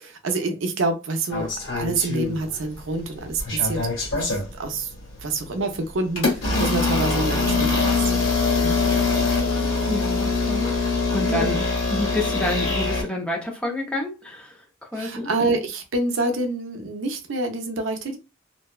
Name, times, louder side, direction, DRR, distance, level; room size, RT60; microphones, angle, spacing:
voice 1, 0.0-1.5 1.8-3.9 4.2-4.9 5.2-8.0 8.6-8.8 11.3-11.7 14.9-18.2, right 2 dB, 75° right, 0.5 m, -27 dB
sound 1, 1.3-2.8 3.1-4.5 5.1-5.3 6.1-13.0, left 3 dB, 90° left, 1.3 m, -23 dB
voice 2, 9.4-11.6 11.9-14.6 14.9-15.3, left 1 dB, 5° left, 0.5 m, -29 dB
2.6 x 2.1 x 2.2 m
head